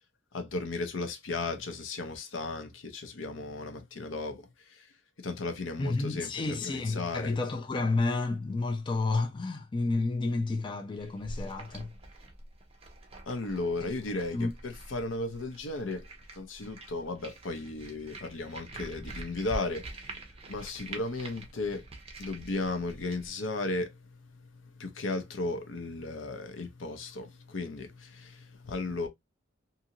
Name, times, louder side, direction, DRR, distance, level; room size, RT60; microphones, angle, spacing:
voice 1, 0.3-4.9 5.2-7.3 13.3-16.1 16.4-19.9 20.5-21.9 22.2-24.0 24.8-29.1, left 3 dB, 90° left, 0.7 m, -35 dB
voice 2, 5.8-11.9 13.8-13.9 14.3-14.5, left 3 dB, 25° left, 0.4 m, -30 dB
sound 1, 10.9-23.3, right 2 dB, 30° right, 0.6 m, -46 dB
2.7 x 2.6 x 2.7 m
head